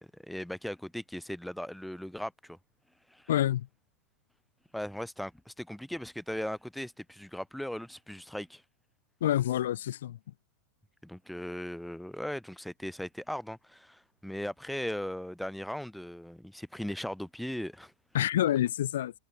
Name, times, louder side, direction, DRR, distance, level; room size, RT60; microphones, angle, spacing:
voice 1, 0.0-2.6 3.1-3.3 4.7-8.6 11.0-17.9, equal, ahead, 0.6 m, -38 dB
voice 2, 3.3-3.7 9.2-10.2 18.1-19.1, left 12 dB, 60° left, 0.5 m, -27 dB
figure-of-eight pair, 90°, 0 cm